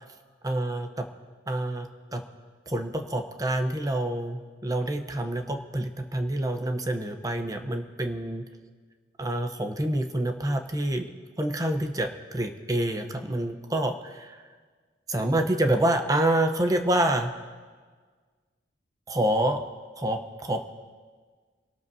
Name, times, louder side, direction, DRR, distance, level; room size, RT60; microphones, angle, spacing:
voice 1, 0.4-1.1 1.5-2.2 2.7-8.4 9.2-11.1 11.4-14.4 15.1-17.3 19.1-19.7 20.0-20.6, right 1 dB, 20° right, 5 dB, 0.7 m, -27 dB
25.0 x 13.0 x 2.7 m, 1.5 s
head